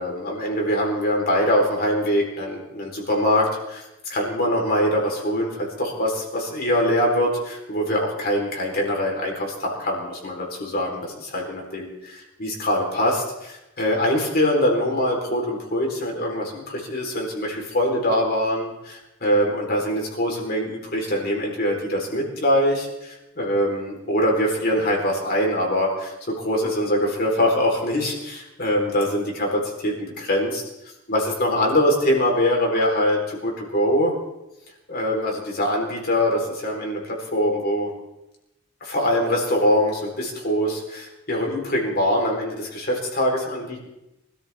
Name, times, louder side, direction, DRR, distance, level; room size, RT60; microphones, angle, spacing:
voice 1, 0.0-3.8 4.1-30.6 31.1-34.1 34.9-37.9 38.8-43.9, equal, 45° left, 0 dB, 4.2 m, -23 dB
25.0 x 13.5 x 3.6 m, 0.93 s
head